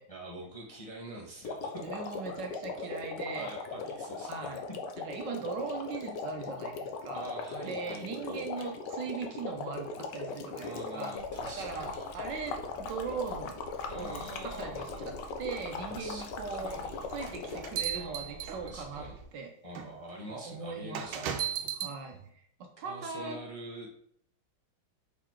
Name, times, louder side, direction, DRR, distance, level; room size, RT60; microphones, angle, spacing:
voice 1, 0.1-1.8 3.4-4.5 7.1-8.7 9.4-9.5 10.6-12.1 13.9-15.1 15.8-17.1 17.9-19.2 19.6-21.7 22.8-23.9, right 1 dB, 25° left, -3 dB, 0.9 m, -45 dB
sound 1, 1.4-17.9, left 4 dB, 65° left, 1.3 m, -39 dB
voice 2, 1.8-3.5 4.3-4.6 5.0-7.3 7.6-11.1 11.4-13.5 13.9-16.8 17.1-19.1 19.3-19.5 20.3-21.4 21.7-23.4, right 5 dB, 65° right, 4 dB, 1.3 m, -39 dB
sound 2, 11.1-19.2, right 1 dB, 40° right, 2.1 m, -50 dB
sound 3, 17.2-19.0 19.8-19.9 20.9-22.0, right 10 dB, 90° right, 1.5 m, -35 dB
5.5 x 4.2 x 4.5 m, 0.66 s
omnidirectional pair, 2.2 m